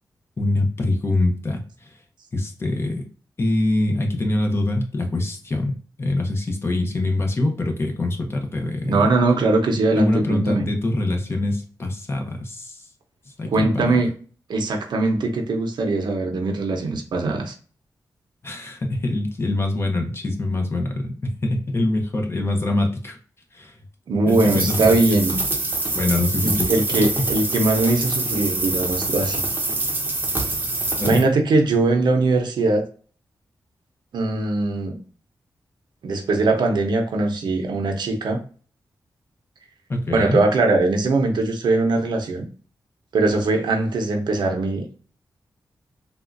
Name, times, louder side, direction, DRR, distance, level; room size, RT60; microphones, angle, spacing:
voice 1, 0.4-1.9 2.3-3.1 3.4-9.1 9.9-12.8 13.4-13.9 18.4-23.2 23.5-23.7 24.3-25.2 25.9-26.7 27.2-27.3 31.0-31.3 39.9-40.4, left 2 dB, 35° left, 0.8 m, -24 dB
voice 2, 8.8-10.7 13.5-14.1 14.5-17.5 24.1-25.4 26.4-29.4 31.0-32.8 34.1-35.0 36.0-38.4 40.1-42.4 43.1-44.9, right 2 dB, 85° right, 0.7 m, -21 dB
sound 1, 24.3-31.2, right 2 dB, 25° right, 0.7 m, -25 dB
3.6 x 2.4 x 2.5 m
wide cardioid pair, 100°, 7 cm